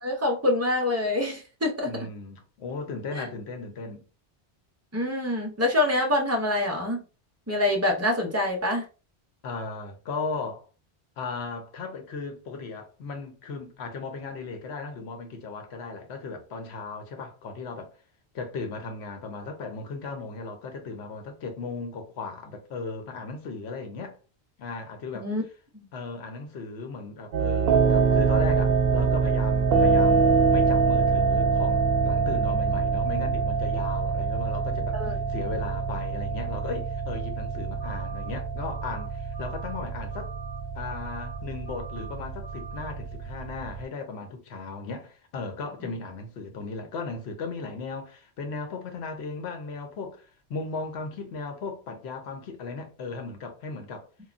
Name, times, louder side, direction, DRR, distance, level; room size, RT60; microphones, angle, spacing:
voice 1, 0.0-2.1 3.1-3.2 4.9-7.0 7.5-8.8 25.1-25.4 25.7-25.9 34.9-35.1, left 1 dB, 20° right, 0.5 m, -26 dB
voice 2, 1.9-4.1 9.4-10.7 11.2-17.9 18.3-24.2 24.6-25.3 25.9-40.3 40.7-54.1, left 4 dB, 80° left, 0.9 m, -36 dB
sound 1, 27.3-43.8, right 5 dB, 75° right, 0.8 m, -25 dB
sound 2, 37.8-38.3 38.6-39.0 39.3-39.8 40.1-40.6 40.9-41.4 41.6-42.1 42.4-42.9, right 5 dB, 30° left, 1.4 m, -44 dB
3.0 x 2.2 x 2.4 m
omnidirectional pair, 1.1 m